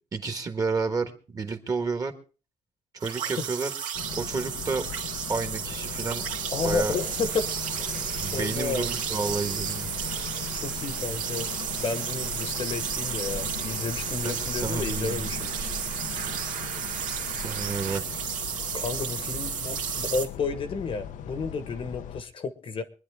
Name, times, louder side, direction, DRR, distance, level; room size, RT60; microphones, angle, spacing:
voice 1, 0.1-2.1 3.0-3.7 4.2-4.8 5.3-6.2 6.6-7.0 8.2-9.9 14.2-15.3 17.4-18.2, right 4 dB, 25° right, 7 dB, 1.4 m, -30 dB
sound 1, 3.0-20.3, right 8 dB, 70° right, 2.0 m, -33 dB
sound 2, 3.9-22.2, left 10 dB, 70° left, 0.7 m, -39 dB
voice 2, 6.5-7.5 7.8-8.0 8.3-8.9 10.5-11.5 11.8-15.4 18.7-22.8, left 4 dB, 40° left, 11 dB, 1.1 m, -31 dB
sound 3, 6.6-18.0, right 6 dB, 85° right, 1.6 m, -41 dB
24.5 x 10.0 x 3.5 m, 0.37 s
cardioid pair, 160°, 14 cm